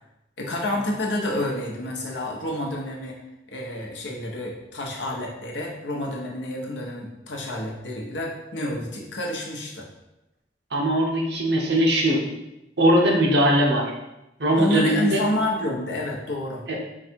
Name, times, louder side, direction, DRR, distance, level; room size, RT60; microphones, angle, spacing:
voice 1, 0.4-3.2 3.5-9.9 14.6-16.6, left 1 dB, 80° left, -2 dB, 0.9 m, -29 dB
voice 2, 10.7-12.2 12.8-13.9 14.4-15.2 16.7-16.8, right 1 dB, 70° right, 0 dB, 0.9 m, -20 dB
4.8 x 2.4 x 4.4 m, 0.91 s
head